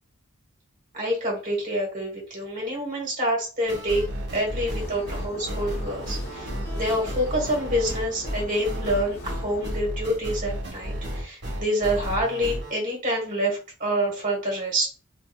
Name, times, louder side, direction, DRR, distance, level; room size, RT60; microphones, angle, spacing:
voice 1, 0.9-4.0 4.3-14.9, equal, 40° right, -1 dB, 1.6 m, -27 dB
sound 1, 3.7-12.7, equal, 55° right, 1.3 m, -32 dB
sound 2, 4.8-9.8, left 1 dB, 50° left, 0.9 m, -40 dB
3.4 x 2.6 x 2.4 m, 0.35 s
head